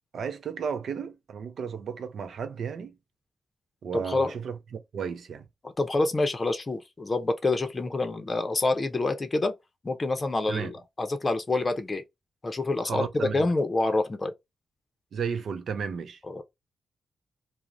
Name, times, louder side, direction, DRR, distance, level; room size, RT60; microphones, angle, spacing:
voice 1, 0.1-2.9 3.8-5.4 10.5-10.7 12.9-13.5 15.1-16.2, right 6 dB, 75° right, 0.4 m, -33 dB
voice 2, 3.9-4.3 5.8-9.5 9.8-12.0 12.4-13.1 13.3-14.3 16.3-16.4, left 2 dB, 35° left, 0.6 m, -27 dB
2.4 x 2.0 x 3.0 m
cardioid pair, 65°, 0 cm